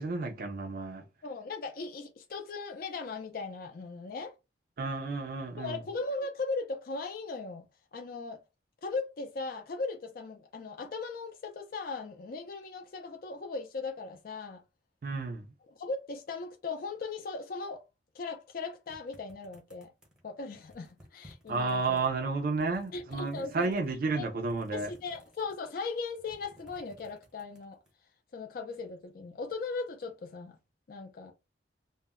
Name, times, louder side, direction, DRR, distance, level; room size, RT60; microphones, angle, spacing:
voice 1, 0.0-1.0 4.8-5.8 15.0-15.5 21.5-24.9, right 3 dB, 50° right, 0.4 m, -32 dB
voice 2, 1.2-4.3 5.6-7.7 7.9-8.4 8.8-14.6 15.7-17.8 18.1-19.9 20.2-22.0 22.9-23.7 24.1-24.3 24.7-27.8 28.3-30.6 30.9-31.3, left 4 dB, 50° left, 0.4 m, -38 dB
sound 1, 18.9-20.2 20.6-22.1 22.5-23.9 24.4-25.8 26.1-27.9, equal, 5° right, 0.6 m, -57 dB
2.1 x 2.0 x 3.5 m
head